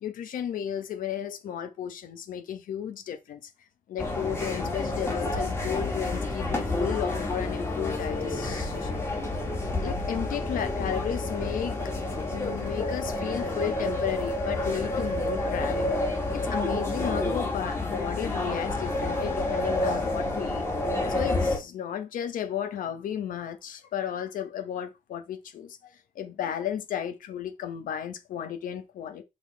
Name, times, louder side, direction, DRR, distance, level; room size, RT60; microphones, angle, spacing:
voice 1, 0.0-3.4 3.9-9.0 9.8-11.8 12.3-15.9 16.3-20.6 21.1-25.8 26.1-29.2, left 9 dB, 75° left, 1.4 m, -33 dB
sound 1, 4.0-21.6, left 2 dB, 20° left, 2.4 m, -29 dB
6.4 x 4.1 x 4.7 m
wide cardioid pair, 165°, 14 cm